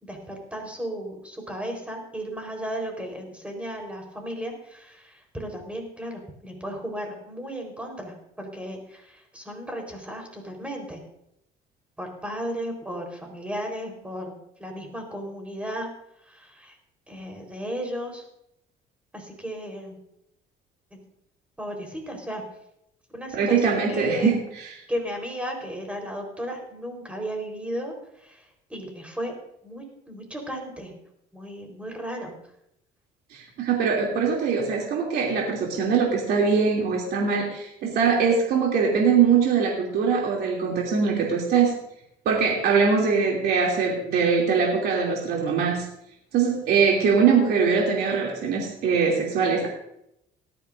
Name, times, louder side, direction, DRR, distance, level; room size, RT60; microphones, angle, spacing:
voice 1, 0.0-11.0 12.0-14.3 14.6-15.9 16.2-16.8 17.1-18.2 19.1-20.0 20.9-21.0 21.6-22.4 23.1-24.4 24.9-28.4 28.7-29.3 29.6-30.9 31.3-32.3, equal, 5° right, 2 dB, 4.2 m, -35 dB
voice 2, 23.3-24.7 33.3-41.7 42.2-45.8 46.3-49.7, right 5 dB, 75° right, -2 dB, 2.8 m, -22 dB
19.0 x 12.5 x 2.6 m, 0.78 s
cardioid pair, 110°, 17 cm